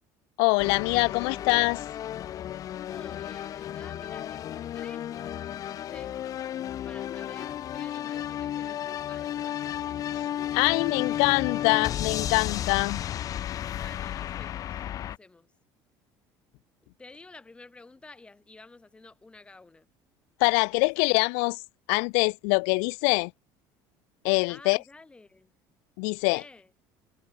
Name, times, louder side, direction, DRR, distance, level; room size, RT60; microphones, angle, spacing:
voice 1, 0.4-1.8 10.5-13.0 20.4-21.6 21.9-23.3 24.2-24.8 26.0-26.4, left 40 dB or more, 90° left, 1.1 m, -24 dB
sound 1, 0.6-15.2, left 11 dB, 40° left, 1.5 m, -33 dB
voice 2, 2.9-6.2 6.8-9.7 13.7-15.5 16.8-19.9 20.8-21.2 24.5-25.5 26.2-26.7, left 3 dB, 10° left, 4.7 m, -51 dB
cardioid pair, 140°, 9 cm